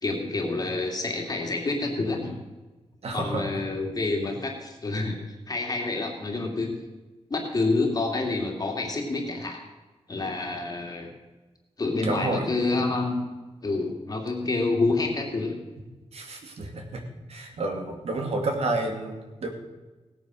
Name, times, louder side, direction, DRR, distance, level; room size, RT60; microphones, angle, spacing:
voice 1, 0.0-2.4 3.1-5.2 5.5-6.7 7.3-9.6 10.1-11.1 11.8-13.2 13.6-15.6, left 3 dB, 35° left, 1 dB, 2.5 m, -28 dB
voice 2, 3.0-3.4 12.0-12.5 16.1-17.0 17.3-19.5, right 2 dB, 65° right, 3 dB, 2.4 m, -30 dB
17.0 x 9.1 x 6.3 m, 1.2 s
wide cardioid pair, 175°, 11 cm